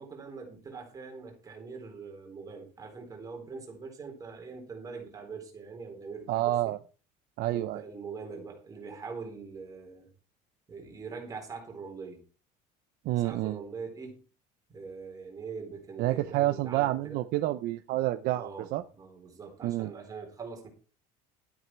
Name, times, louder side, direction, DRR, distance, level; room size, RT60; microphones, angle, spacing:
voice 1, 0.0-6.8 7.5-10.1 10.7-12.2 13.1-14.2 14.7-17.2 18.3-20.7, right 5 dB, 20° right, 2 dB, 4.0 m, -43 dB
voice 2, 6.3-6.8 7.4-7.9 13.0-13.6 16.0-18.8 19.6-19.9, right 15 dB, 50° right, 9 dB, 0.7 m, -29 dB
12.5 x 9.4 x 4.6 m, 0.35 s
cardioid pair, 180°, 19 cm